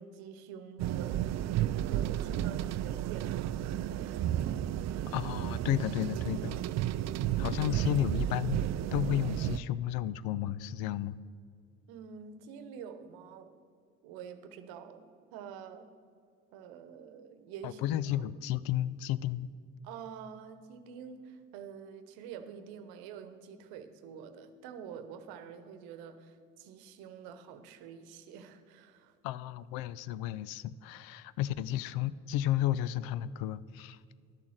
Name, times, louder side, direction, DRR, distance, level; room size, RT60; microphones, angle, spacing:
voice 1, 0.0-1.5 1.9-4.3 11.9-13.5 14.0-15.9 16.5-17.8 18.1-18.2 19.8-29.1, right 7 dB, 75° right, 10 dB, 1.0 m, -47 dB
sound 1, 0.8-9.6, right 12 dB, 50° right, 0.4 m, -32 dB
voice 2, 5.1-6.6 7.4-11.1 17.6-19.5 29.2-34.0, left 12 dB, 70° left, 18 dB, 0.5 m, -32 dB
11.5 x 7.0 x 6.4 m, 2.2 s
hypercardioid pair, 65°, 38 cm